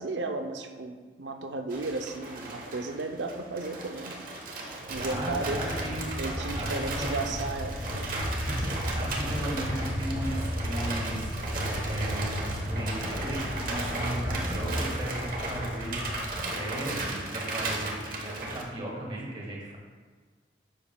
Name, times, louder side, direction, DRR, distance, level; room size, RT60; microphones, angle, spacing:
voice 1, 0.0-4.2 4.9-8.1, right 3 dB, 80° right, 5 dB, 0.6 m, -34 dB
sound 1, 1.7-18.6, right 2 dB, 50° right, 1.1 m, -36 dB
sound 2, 4.9-16.3, equal, 60° left, 2.1 m, -34 dB
voice 2, 4.9-6.1 6.5-7.3 8.3-11.3 11.9-16.0 16.5-19.8, right 1 dB, 30° right, -4 dB, 1.9 m, -36 dB
9.7 x 7.3 x 2.3 m, 1.4 s
head